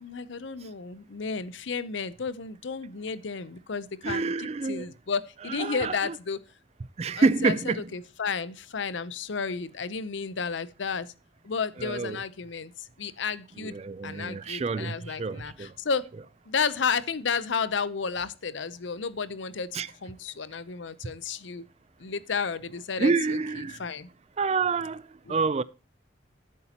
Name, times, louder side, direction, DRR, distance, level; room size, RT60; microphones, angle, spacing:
voice 1, 0.0-6.4 7.2-11.1 11.4-13.8 14.0-16.0 16.5-21.6 22.0-24.1 25.3-25.4, left 5 dB, 70° left, 0.6 m, -32 dB
voice 2, 4.0-4.9 5.5-6.2 7.0-7.9 11.8-12.2 13.6-15.7 19.7-19.9 23.0-23.8 24.4-25.6, right 4 dB, 30° right, 0.3 m, -28 dB
11.0 x 8.2 x 2.9 m
head